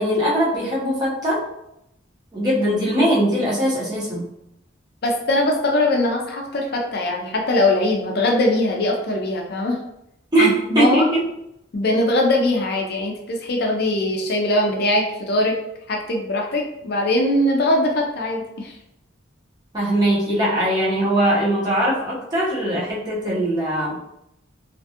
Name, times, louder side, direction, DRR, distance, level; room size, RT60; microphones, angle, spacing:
voice 1, 0.0-1.4 2.3-4.2 10.3-11.2 19.7-24.0, right 1 dB, 20° right, -7 dB, 0.7 m, -20 dB
voice 2, 5.0-9.8 10.4-11.1 11.7-15.5 15.9-18.7, left 1 dB, 55° left, 1 dB, 0.4 m, -21 dB
2.5 x 2.2 x 2.7 m, 0.81 s
head